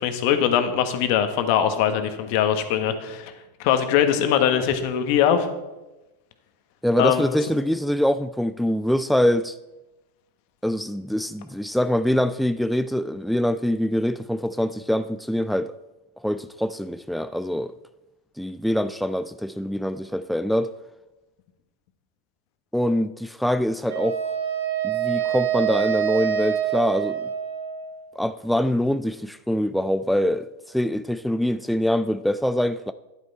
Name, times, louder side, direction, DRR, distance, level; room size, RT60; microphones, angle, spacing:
voice 1, 0.0-3.3 3.6-5.5 7.0-7.2, left 9 dB, 55° left, 1.4 m, -21 dB
voice 2, 6.8-9.6 10.6-15.7 16.2-17.7 18.4-20.7 22.7-24.2 24.8-27.2 28.2-32.9, equal, ahead, 0.3 m, -24 dB
Wind instrument woodwind instrument, 23.9-28.0, right 10 dB, 70° right, 1.8 m, -26 dB
11.0 x 9.7 x 4.3 m
hypercardioid pair, 95°, 0 cm